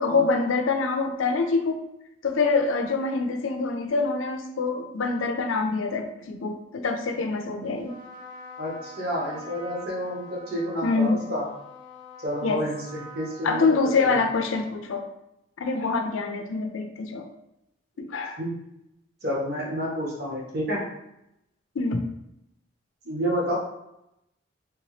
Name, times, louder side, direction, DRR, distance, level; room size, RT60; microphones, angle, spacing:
voice 1, 0.0-1.8 2.2-7.9 10.8-11.2 12.4-12.6 13.4-15.1 15.6-17.3 18.0-18.4 21.8-22.0, left 4 dB, 80° left, 5 dB, 0.5 m, -25 dB
Trumpet, 7.8-14.6, left 1 dB, 25° left, 1.0 m, -45 dB
voice 2, 8.6-11.4 12.2-13.6 14.0-14.1 18.4-18.5 19.2-20.8 23.0-23.6, equal, 50° right, -4 dB, 1.2 m, -29 dB
3.4 x 2.8 x 3.1 m, 0.85 s
head